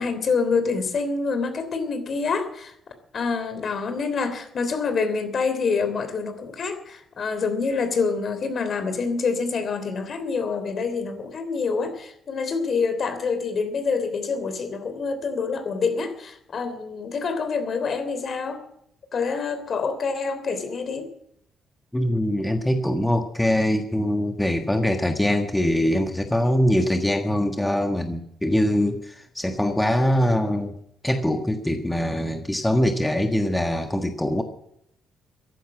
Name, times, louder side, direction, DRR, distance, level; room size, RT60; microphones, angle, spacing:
voice 1, 0.0-2.7 3.1-18.6 19.1-21.1, left 4 dB, 50° left, 10 dB, 3.2 m, -26 dB
voice 2, 21.9-30.8 31.0-34.4, left 1 dB, 10° left, 5 dB, 1.5 m, -23 dB
14.5 x 11.5 x 7.4 m, 0.73 s
cardioid pair, 90°, 0 cm